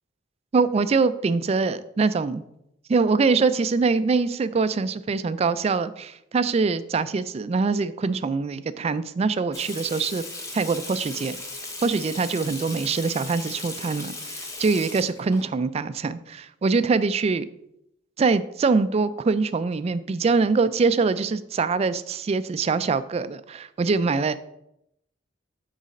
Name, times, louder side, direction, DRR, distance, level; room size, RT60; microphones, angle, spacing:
voice 1, 0.5-2.4 2.9-10.2 10.5-11.4 11.8-17.5 18.2-24.3, right 4 dB, 35° right, 14 dB, 0.3 m, -23 dB
Water tap faucet / Sink (filling or washing), 9.5-15.4, left 2 dB, 15° left, 0.8 m, -37 dB
6.3 x 4.0 x 5.3 m, 0.80 s
head